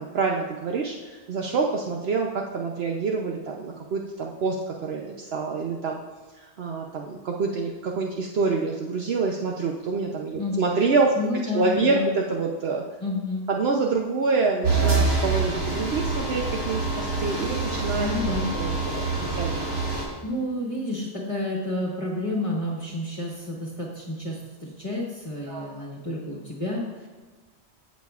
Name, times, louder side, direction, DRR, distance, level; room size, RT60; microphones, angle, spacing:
voice 1, 0.0-6.0 6.3-11.1 11.5-12.8 13.5-18.1 18.5-19.9 25.5-25.9, right 4 dB, 65° right, 0 dB, 0.9 m, -27 dB
voice 2, 11.2-12.1 13.0-13.4 17.9-18.5 20.2-27.1, left 2 dB, 30° left, -3 dB, 1.4 m, -30 dB
sound 1, 14.6-20.0, right 3 dB, 85° right, 2.6 m, -26 dB
15.0 x 6.3 x 2.4 m, 1.3 s
omnidirectional pair, 1.2 m